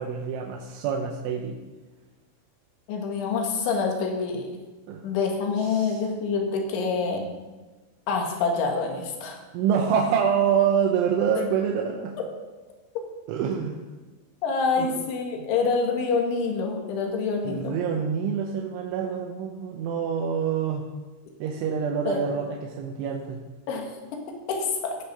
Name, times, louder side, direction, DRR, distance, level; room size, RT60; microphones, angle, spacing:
voice 1, 0.0-1.6 4.9-5.0 5.7-6.0 9.5-12.1 13.3-13.8 14.8-14.9 15.4-15.5 17.4-20.8 21.4-23.4, right 7 dB, 85° right, 1 dB, 3.3 m, -26 dB
voice 2, 2.9-4.5 5.0-7.2 8.1-9.4 14.4-17.7 22.1-22.2 23.7-23.9 24.5-25.0, left 4 dB, 75° left, 2 dB, 4.0 m, -26 dB
17.5 x 6.4 x 5.8 m, 1.2 s
omnidirectional pair, 5.6 m